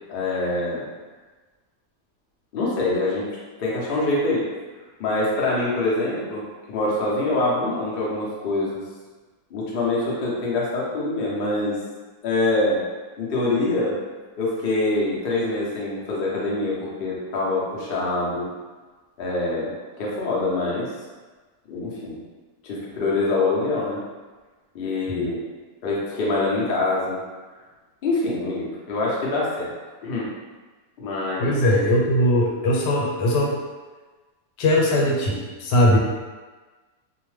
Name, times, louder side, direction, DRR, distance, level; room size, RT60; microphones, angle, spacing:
voice 1, 0.1-0.8 2.5-3.3 3.6-4.4 5.0-6.4 6.7-8.8 9.5-11.8 12.2-12.8 13.2-14.0 14.4-18.5 19.2-19.7 20.0-20.9 21.7-22.2 22.6-24.0 24.7-25.4 25.8-27.2 28.0-29.7 30.0-30.3 31.0-31.5, left 2 dB, 65° left, -5 dB, 0.5 m, -24 dB
voice 2, 31.4-33.5 34.6-36.0, left 1 dB, 85° left, -2 dB, 1.2 m, -20 dB
2.7 x 2.1 x 3.1 m, 1.3 s
omnidirectional pair, 1.8 m